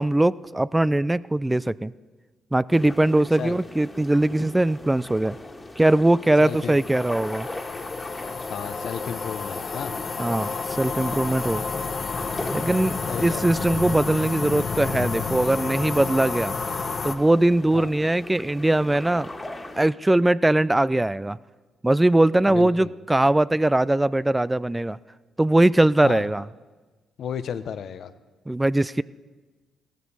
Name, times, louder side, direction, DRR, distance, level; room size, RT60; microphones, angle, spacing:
voice 1, 0.0-1.9 2.5-5.4 5.8-7.5 10.2-11.6 12.5-16.5 17.0-19.3 19.8-21.4 21.8-25.0 25.4-26.4 28.5-29.0, right 1 dB, 15° right, 18 dB, 0.3 m, -21 dB
sound 1, 2.7-19.9, left 1 dB, 20° left, 1.7 m, -40 dB
voice 2, 6.4-6.8 8.5-9.9 13.0-13.5 17.7-17.9 22.5-22.9 26.0-26.3 27.2-28.1, left 8 dB, 65° left, 12 dB, 0.7 m, -33 dB
sound 2, 6.4-17.1, left 4 dB, 45° left, 1.2 m, -30 dB
16.0 x 14.5 x 4.1 m, 1.3 s
supercardioid pair, 55°, 0 cm